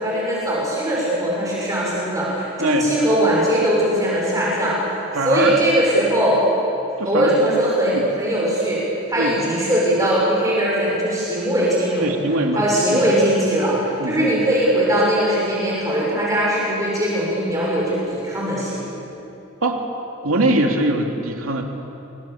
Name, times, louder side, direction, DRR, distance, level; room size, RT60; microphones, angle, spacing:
voice 1, 0.0-5.0 5.2-6.4 7.0-12.2 12.5-18.8, right 1 dB, 15° right, -6 dB, 6.4 m, -20 dB
voice 2, 5.1-5.6 7.0-7.3 7.9-8.0 9.2-9.4 12.0-12.6 12.9-13.0 14.0-14.3 19.6-19.8 20.2-21.6, right 2 dB, 85° right, 2 dB, 2.7 m, -21 dB
29.5 x 25.0 x 7.2 m, 2.9 s
head